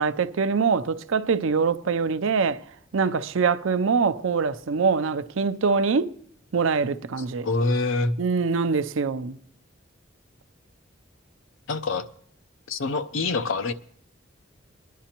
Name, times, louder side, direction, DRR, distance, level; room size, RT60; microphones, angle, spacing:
voice 1, 0.0-2.6 2.9-6.1 6.5-7.5 8.2-9.4, right 5 dB, 90° right, 0.5 m, -24 dB
voice 2, 7.4-8.2 11.7-12.1 12.7-13.7, left 3 dB, 80° left, 0.6 m, -25 dB
22.5 x 10.0 x 2.9 m
head